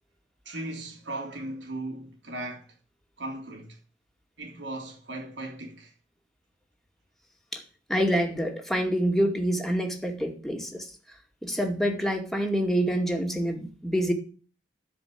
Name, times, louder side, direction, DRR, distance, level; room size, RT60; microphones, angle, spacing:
voice 1, 0.4-2.7 3.2-3.8 4.4-5.9, right 2 dB, 85° right, 3.0 m, -37 dB
voice 2, 7.9-10.9 11.4-14.1, equal, ahead, 2.3 m, -26 dB
12.5 x 5.2 x 8.5 m
head